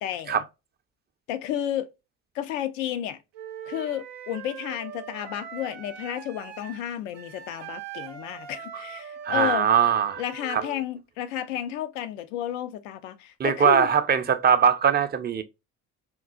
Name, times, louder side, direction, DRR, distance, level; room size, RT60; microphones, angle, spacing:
voice 1, 0.0-0.4 1.3-1.9 2.3-3.2 3.7-9.7 10.2-13.9, left 11 dB, 85° left, 0.5 m, -32 dB
Wind instrument woodwind instrument, 3.3-10.8, right 9 dB, 85° right, 0.6 m, -41 dB
voice 2, 9.2-10.2 10.5-10.6 13.4-15.4, right 7 dB, 25° right, 0.5 m, -21 dB
3.7 x 2.3 x 2.2 m
hypercardioid pair, 60°, 37 cm